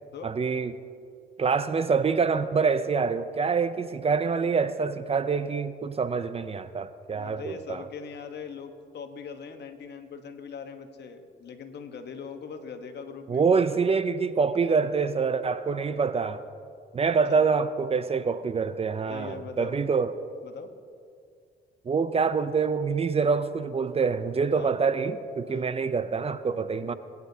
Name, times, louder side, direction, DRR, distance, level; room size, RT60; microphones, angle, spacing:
voice 1, 0.2-0.7 1.4-7.8 13.3-16.4 16.9-20.1 21.9-26.9, right 5 dB, 30° right, 12 dB, 0.5 m, -26 dB
voice 2, 7.1-13.6 17.1-17.4 19.1-20.0 20.4-20.7 24.5-24.8 25.5-25.7, left 6 dB, 60° left, 7 dB, 1.1 m, -41 dB
20.0 x 9.6 x 2.8 m, 2.3 s
cardioid pair, 90°, 20 cm